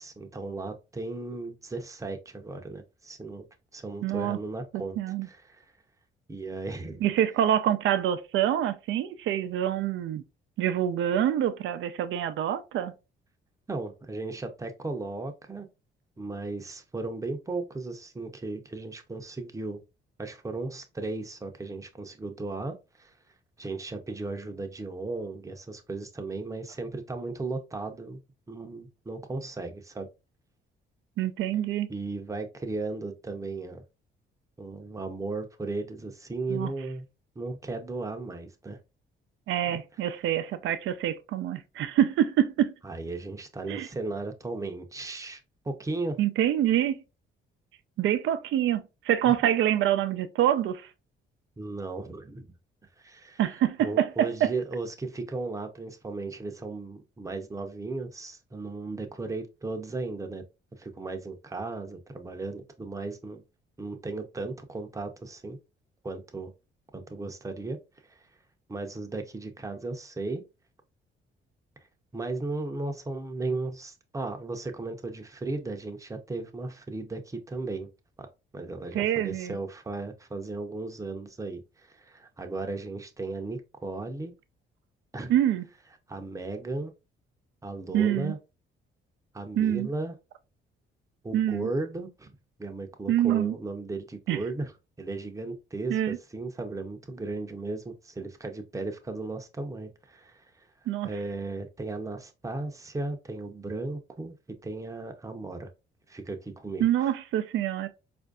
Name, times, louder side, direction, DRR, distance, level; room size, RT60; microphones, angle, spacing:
voice 1, 0.0-3.5 3.7-5.6 6.3-7.0 13.7-15.7 16.2-19.8 20.2-23.1 23.6-28.2 28.5-30.1 31.9-33.8 34.6-37.0 37.4-38.8 39.7-39.8 42.8-45.4 45.6-46.2 51.6-52.5 53.0-53.4 53.8-60.4 60.8-63.4 63.8-65.6 66.0-66.5 66.9-67.8 68.1-68.2 68.7-70.4 72.1-77.9 78.2-78.3 78.5-84.3 85.1-85.3 86.1-86.9 87.6-88.4 89.3-90.1 91.2-94.7 95.0-100.7 101.0-105.7 106.1-107.1, right 3 dB, 15° right, 0.7 m, -36 dB
voice 2, 4.0-4.4 5.0-5.3 7.0-10.2 10.6-12.9 31.2-31.9 36.5-36.7 39.5-42.7 43.7-43.9 46.2-47.0 48.0-50.8 53.4-54.5 78.9-79.6 85.3-85.6 87.9-88.3 89.6-89.9 91.3-91.7 93.1-93.6 94.3-94.4 95.9-96.2 100.9-101.1 106.8-107.9, right 11 dB, 75° right, 0.5 m, -26 dB
4.3 x 2.5 x 2.3 m
cardioid pair, 90°, 20 cm